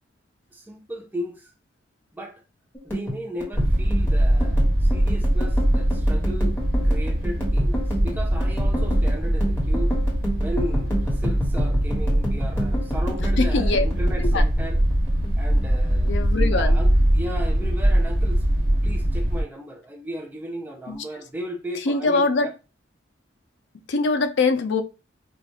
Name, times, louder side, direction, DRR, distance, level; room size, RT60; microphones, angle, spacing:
voice 1, 0.5-1.5 2.1-2.4 2.8-6.5 6.8-9.9 10.4-14.8 15.4-16.1 16.5-18.4 18.8-22.5, equal, 10° right, 0.5 m, -35 dB
sound 1, 2.7-15.3 15.6-16.6 16.9-17.3 17.6-18.3, equal, 10° left, 1.4 m, -31 dB
sound 2, 3.5-19.4, right 1 dB, 70° right, 1.2 m, -21 dB
voice 2, 13.4-13.9 14.2-14.4 16.0-16.8 20.9-21.0 21.9-22.5 23.9-24.8, left 3 dB, 70° left, 0.5 m, -23 dB
5.1 x 2.4 x 2.2 m
head